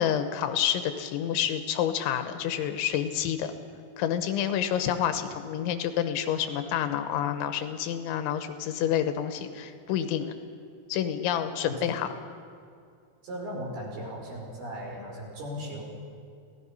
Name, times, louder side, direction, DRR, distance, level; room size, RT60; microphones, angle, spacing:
voice 1, 0.0-3.5 4.0-10.3 10.9-12.1, left 10 dB, 85° left, 9 dB, 3.5 m, -28 dB
voice 2, 13.2-15.8, equal, 55° right, -3 dB, 7.3 m, -37 dB
29.0 x 18.0 x 5.5 m, 2.4 s
omnidirectional pair, 5.3 m